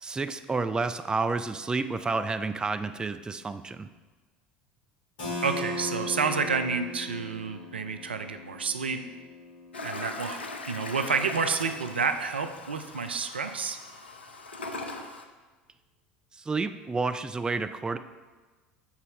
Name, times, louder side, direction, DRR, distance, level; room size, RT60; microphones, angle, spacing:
voice 1, 0.0-3.9 5.2-5.4 16.3-18.0, right 3 dB, 15° right, 10 dB, 0.4 m, -30 dB
Keyboard (musical), 5.2-10.7, left 2 dB, 65° left, 1.7 m, -38 dB
voice 2, 5.4-9.0 9.8-10.4 10.7-13.8, right 5 dB, 80° right, 8 dB, 0.4 m, -29 dB
Toilet flush, 9.7-15.2, left 2 dB, 85° left, 0.6 m, -40 dB
7.2 x 4.1 x 4.8 m, 1.3 s
figure-of-eight pair, 70°, 6 cm